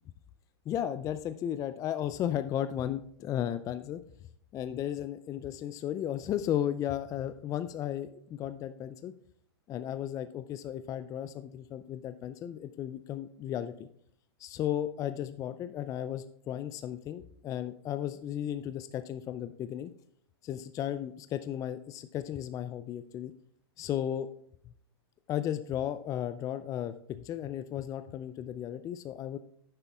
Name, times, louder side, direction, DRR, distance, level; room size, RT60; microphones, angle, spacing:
voice 1, 0.7-4.0 4.5-9.1 9.7-13.9 14.4-19.9 20.4-23.3 23.8-24.3 25.3-29.4, left 10 dB, 25° left, 11 dB, 0.4 m, -35 dB
11.0 x 10.0 x 2.4 m, 0.66 s
hypercardioid pair, 110°, 14 cm